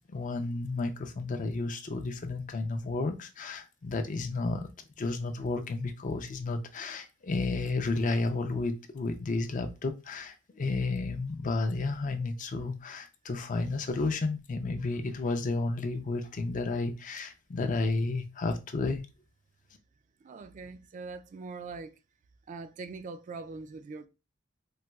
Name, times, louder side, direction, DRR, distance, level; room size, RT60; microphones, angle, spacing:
voice 1, 0.1-4.7 5.0-19.0, left 3 dB, 40° left, 0.4 m, -32 dB
voice 2, 20.2-21.9 22.5-24.1, right 4 dB, 40° right, 0.3 m, -42 dB
4.0 x 2.3 x 2.2 m
head